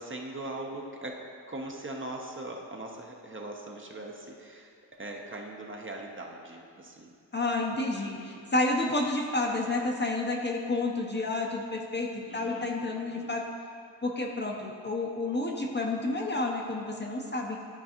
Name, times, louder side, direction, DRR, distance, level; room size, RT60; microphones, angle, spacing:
voice 1, 0.0-7.1 7.9-8.4 12.3-13.4, right 2 dB, 25° right, 0 dB, 0.8 m, -41 dB
voice 2, 7.3-13.4 14.0-17.6, left 2 dB, 25° left, 0 dB, 0.7 m, -30 dB
11.5 x 4.6 x 2.9 m, 2.3 s
cardioid pair, 80°, 44 cm